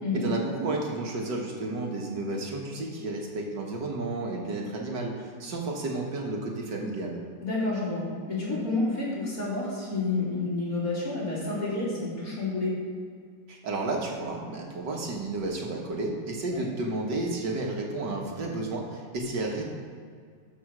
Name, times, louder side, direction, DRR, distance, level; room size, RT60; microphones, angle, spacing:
voice 1, 0.1-7.2 13.5-19.6, right 2 dB, 75° right, 0 dB, 2.0 m, -32 dB
voice 2, 7.4-12.8 16.5-16.6, left 3 dB, 50° left, -7 dB, 3.9 m, -29 dB
13.0 x 5.4 x 6.1 m, 2.1 s
omnidirectional pair, 1.9 m